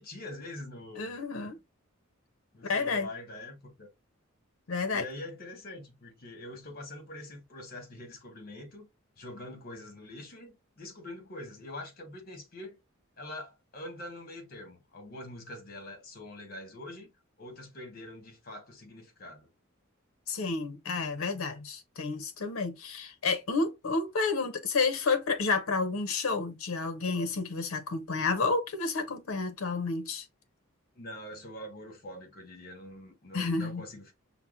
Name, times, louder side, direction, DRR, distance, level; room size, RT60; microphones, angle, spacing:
voice 1, 0.0-1.2 2.5-3.9 4.9-8.9 9.2-12.8 13.2-17.1 17.4-19.5 30.9-34.1, left 1 dB, 45° left, 1.2 m, -44 dB
voice 2, 1.0-1.6 2.6-3.1 4.7-5.1 20.3-30.2 33.3-33.8, left 4 dB, 75° left, 0.6 m, -30 dB
5.6 x 2.1 x 2.3 m
head